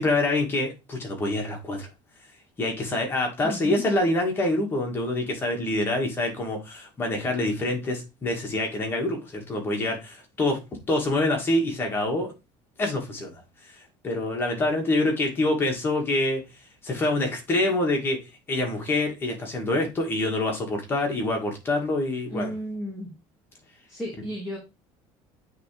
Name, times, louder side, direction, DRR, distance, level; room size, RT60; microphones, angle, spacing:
voice 1, 0.0-1.9 2.6-10.6 10.9-12.3 12.8-13.4 14.0-16.4 16.8-18.2 18.5-22.5, left 2 dB, 20° left, 1 dB, 2.0 m, -26 dB
voice 2, 3.4-3.8 22.3-23.1 23.9-24.6, equal, 5° right, -5 dB, 2.4 m, -33 dB
8.6 x 3.6 x 3.4 m, 0.26 s
cardioid pair, 160°, 11 cm